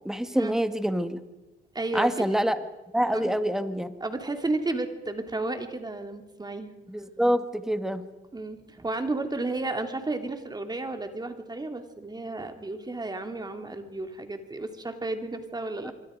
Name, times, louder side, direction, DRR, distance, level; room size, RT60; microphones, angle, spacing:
voice 1, 0.1-1.2 1.9-2.6 2.9-4.0 6.9-8.0 15.8-15.9, equal, ahead, 10 dB, 1.6 m, -26 dB
voice 2, 1.7-2.2 3.1-3.3 4.0-6.8 8.3-15.9, right 2 dB, 20° right, 6 dB, 2.8 m, -32 dB
25.0 x 24.0 x 5.2 m, 1.1 s
cardioid pair, 90°, 20 cm